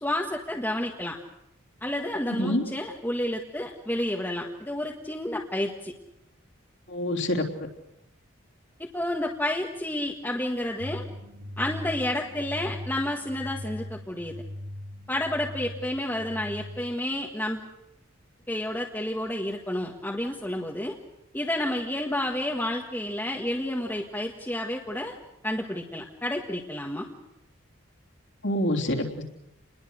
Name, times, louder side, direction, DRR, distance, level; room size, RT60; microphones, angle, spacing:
voice 1, 0.0-1.2 1.8-5.9 8.8-11.0 11.6-14.3 15.1-17.6 18.5-21.0 21.3-25.1 25.4-27.1, left 1 dB, 10° left, -1 dB, 1.6 m, -30 dB
voice 2, 6.9-7.4 28.4-29.2, left 1 dB, 60° left, 0 dB, 3.4 m, -26 dB
sound 1, 10.8-17.0, left 1 dB, 90° right, 2.8 m, -39 dB
29.0 x 21.0 x 6.5 m, 0.85 s
head